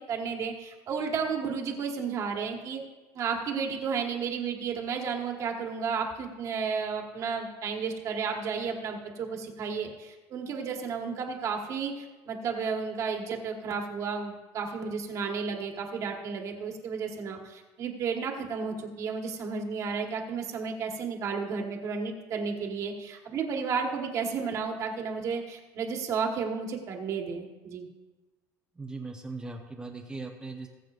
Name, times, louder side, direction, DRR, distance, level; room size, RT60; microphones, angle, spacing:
voice 1, 0.0-2.8 3.1-27.9, right 5 dB, 45° right, 2 dB, 1.5 m, -32 dB
voice 2, 28.8-30.7, right 3 dB, 10° right, 2 dB, 0.8 m, -39 dB
20.0 x 7.8 x 2.5 m, 1.2 s
cardioid pair, 140°, 8 cm